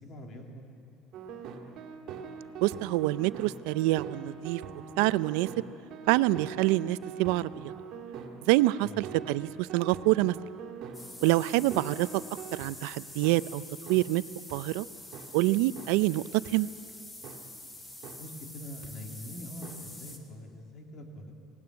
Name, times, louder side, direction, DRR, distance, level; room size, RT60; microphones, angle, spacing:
voice 1, 0.0-0.6 8.8-9.1 18.2-21.3, left 1 dB, 40° left, 2 dB, 3.0 m, -44 dB
sound 1, 1.1-12.7 13.2-13.4 13.9-14.0 14.5-14.6 15.1-15.3 15.8-15.9 16.4-16.5 17.2-17.4 18.0-18.2 18.8-18.9 19.6-19.8, right 6 dB, 55° right, 2.3 m, -43 dB
voice 2, 2.6-4.6 5.0-5.5 6.1-7.7 8.5-10.3 11.2-12.2 12.5-13.6 13.9-14.2 14.5-14.9 15.3-16.2 16.5-16.7, right 18 dB, 85° right, 17 dB, 0.4 m, -26 dB
sound 2, 10.9-20.2, left 1 dB, 15° left, 1.9 m, -46 dB
19.0 x 16.0 x 9.6 m, 2.6 s
cardioid pair, 140°, 0 cm